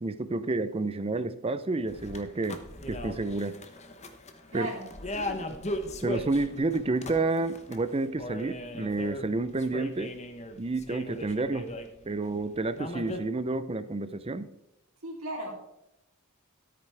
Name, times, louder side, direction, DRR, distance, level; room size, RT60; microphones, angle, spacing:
voice 1, 0.0-2.6 2.9-3.5 4.5-4.7 6.0-10.1 10.6-11.7 12.0-14.5, right 3 dB, 25° right, 13 dB, 0.5 m, -30 dB
sound 1, 1.9-12.3 12.7-13.2, left 1 dB, 30° left, 0.9 m, -38 dB
voice 2, 4.5-5.4 15.0-15.5, right 1 dB, 65° right, -1 dB, 3.4 m, -37 dB
13.0 x 8.8 x 3.4 m, 0.85 s
head